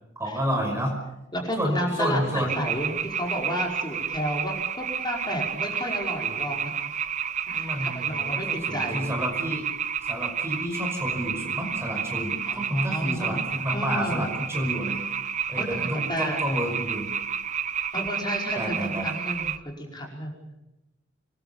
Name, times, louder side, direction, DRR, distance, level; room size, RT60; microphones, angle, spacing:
voice 1, 0.2-1.0 1.6-2.6 7.5-9.6 10.0-15.0 15.5-17.1 18.5-19.1, equal, 15° right, 2 dB, 5.7 m, -30 dB
voice 2, 1.3-6.7 7.5-9.1 12.5-13.4 13.7-14.3 15.6-16.4 17.9-20.6, equal, 25° left, 0 dB, 5.3 m, -32 dB
sound 1, 2.5-19.6, right 7 dB, 40° right, 0.9 m, -31 dB
26.5 x 21.5 x 7.1 m, 0.91 s
head